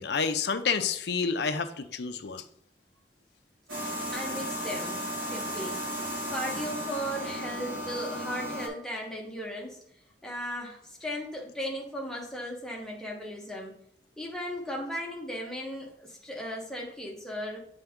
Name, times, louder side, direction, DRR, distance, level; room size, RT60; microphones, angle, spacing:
voice 1, 0.0-2.4, left 5 dB, 70° left, 9 dB, 0.6 m, -29 dB
voice 2, 3.7-5.9 6.3-9.8 10.2-13.8 14.2-17.6, equal, 5° left, -2 dB, 1.2 m, -37 dB
sound 1, 3.7-8.7, equal, 50° right, 2.0 m, -34 dB
7.9 x 3.5 x 3.6 m, 0.71 s
head